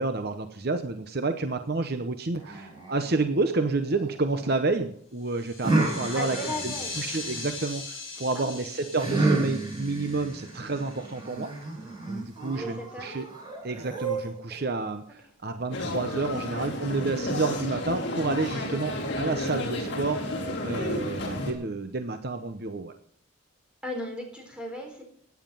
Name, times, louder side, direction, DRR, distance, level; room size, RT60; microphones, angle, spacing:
voice 1, 0.0-11.5 12.1-13.2 13.6-22.9, right 3 dB, 50° right, 8 dB, 0.9 m, -30 dB
sound 1, 2.4-4.6 5.6-7.7 9.0-14.6, right 2 dB, 20° right, 6.4 m, -31 dB
sound 2, 5.2-11.3, left 3 dB, 30° left, 7.3 m, -40 dB
voice 2, 6.1-7.0 8.3-8.9 12.5-13.2 16.5-17.0 23.8-25.0, equal, 5° right, 1 dB, 4.1 m, -37 dB
sound 3, 15.7-21.5, left 1 dB, 55° left, 3.6 m, -32 dB
16.5 x 9.8 x 5.5 m, 0.62 s
head